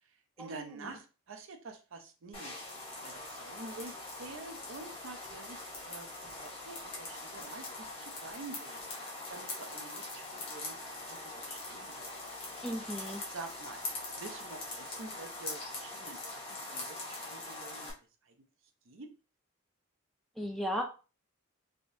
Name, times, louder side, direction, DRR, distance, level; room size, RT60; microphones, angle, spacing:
voice 1, 0.4-2.5 3.0-8.8 9.3-10.8 11.1-12.0 13.3-13.8 14.1-16.4 16.7-17.9 18.2-18.4 18.9-19.1, right 3 dB, 65° right, 5 dB, 0.6 m, -48 dB
sound 1, 2.3-17.9, left 2 dB, 25° left, 0.9 m, -42 dB
voice 2, 12.6-13.2 20.4-20.8, equal, ahead, 1 dB, 0.4 m, -35 dB
3.4 x 2.7 x 2.6 m, 0.33 s
head